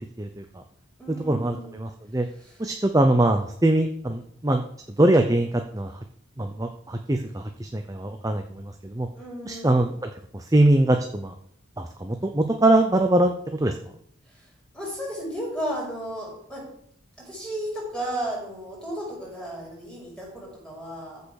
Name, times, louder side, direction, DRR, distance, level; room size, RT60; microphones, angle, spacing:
voice 1, 0.2-0.6 1.1-2.3 2.6-4.6 5.0-6.0 6.4-9.1 9.5-9.9 10.3-11.3 11.8-13.8, right 1 dB, 15° right, 5 dB, 0.6 m, -22 dB
voice 2, 1.0-1.8 2.4-2.6 9.2-9.9 14.3-14.5 14.7-16.6 17.2-21.2, right 1 dB, 5° left, -5 dB, 6.2 m, -34 dB
14.5 x 5.5 x 6.5 m, 0.67 s
head